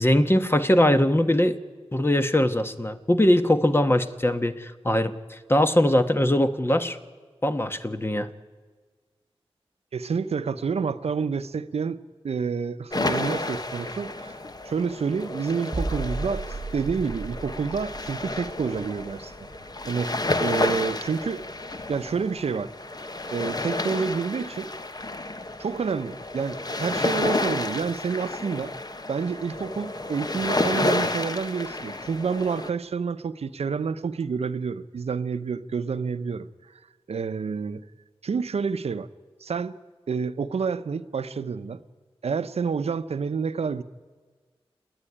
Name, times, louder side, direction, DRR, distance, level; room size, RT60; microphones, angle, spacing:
voice 1, 0.0-1.6 1.9-7.0 7.4-8.3, left 1 dB, 25° left, 9 dB, 1.2 m, -21 dB
voice 2, 9.9-12.0 12.2-14.4 14.6-16.4 16.7-19.3 19.9-20.1 20.4-21.4 21.9-22.7 23.3-24.7 25.6-28.7 29.1-36.5 37.1-37.8 38.2-39.1 39.4-39.8 40.1-41.8 42.2-43.8, right 5 dB, 80° right, 12 dB, 0.7 m, -28 dB
sound 1, 12.9-32.7, left 2 dB, 40° left, 1.2 m, -31 dB
sound 2, 15.7-21.4 21.7-21.9, right 3 dB, 40° right, 1.4 m, -36 dB
28.5 x 9.7 x 9.9 m, 1.5 s
cardioid pair, 50°, 10 cm